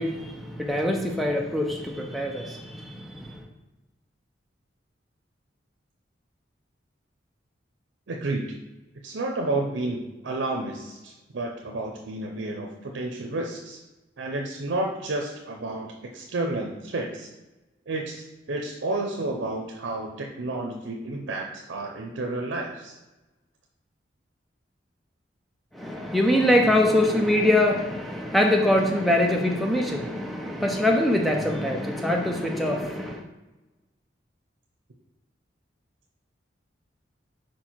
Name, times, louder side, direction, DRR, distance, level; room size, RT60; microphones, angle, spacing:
voice 1, 0.0-3.4 25.7-33.2, left 1 dB, ahead, 1 dB, 0.5 m, -23 dB
voice 2, 8.1-8.5 9.0-10.0 10.2-13.8 14.2-17.3 17.9-23.0, right 2 dB, 90° right, 1 dB, 0.6 m, -31 dB
4.8 x 4.4 x 4.4 m, 1.1 s
head